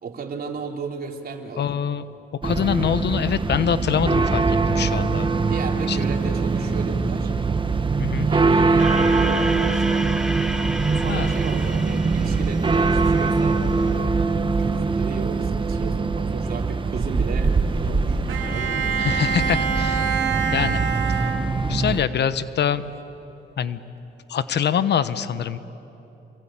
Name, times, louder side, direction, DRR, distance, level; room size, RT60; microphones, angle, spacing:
voice 1, 0.0-1.7 5.4-7.3 8.2-10.1 10.9-14.1 14.6-19.0, right 4 dB, 50° right, 2 dB, 3.5 m, -34 dB
voice 2, 1.6-2.0 2.4-5.3 5.9-6.0 8.0-8.3 11.1-11.3 19.0-20.1 20.5-20.8 21.1-21.2 21.7-22.8 23.6-23.8 24.3-25.6, left 8 dB, 60° left, 13 dB, 1.0 m, -24 dB
sound 1, 2.4-22.0, right 4 dB, 25° right, 1.2 m, -22 dB
sound 2, 8.8-13.2, equal, ahead, 0.8 m, -33 dB
Bowed string instrument, 18.3-22.0, right 6 dB, 85° right, 2.6 m, -26 dB
27.5 x 23.5 x 8.8 m, 3.0 s
cardioid pair, 90°, 20 cm